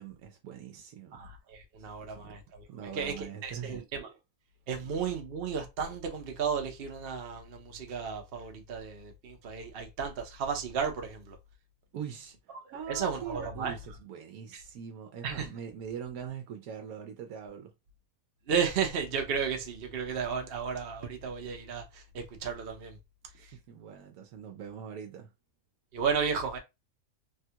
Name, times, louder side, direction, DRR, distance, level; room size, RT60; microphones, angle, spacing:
voice 1, 0.0-1.2 1.8-2.4 2.7-3.8 11.9-12.4 12.7-17.7 23.3-25.3, right 7 dB, 80° right, 1.0 m, -42 dB
voice 2, 1.1-2.6 2.9-4.1 4.7-11.4 12.9-13.7 14.5-14.6 15.2-15.5 18.5-23.0 25.9-26.6, right 6 dB, 55° right, 0.7 m, -33 dB
3.4 x 2.3 x 2.8 m
omnidirectional pair, 1.5 m